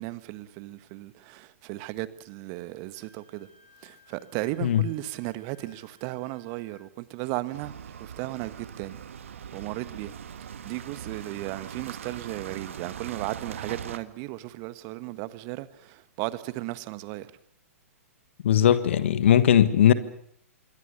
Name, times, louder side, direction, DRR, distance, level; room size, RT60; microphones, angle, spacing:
voice 1, 0.0-3.5 3.8-7.7 8.0-9.0 9.5-10.1 10.6-17.3, right 18 dB, 35° right, 1.5 m, -35 dB
Wind instrument woodwind instrument, 2.9-6.8, left 1 dB, 25° left, 6.8 m, -60 dB
sound 1, 7.5-14.0, right 8 dB, 60° right, 1.7 m, -40 dB
voice 2, 18.4-19.9, left 10 dB, 55° left, 1.4 m, -19 dB
27.0 x 22.0 x 6.8 m
figure-of-eight pair, 110°, 8 cm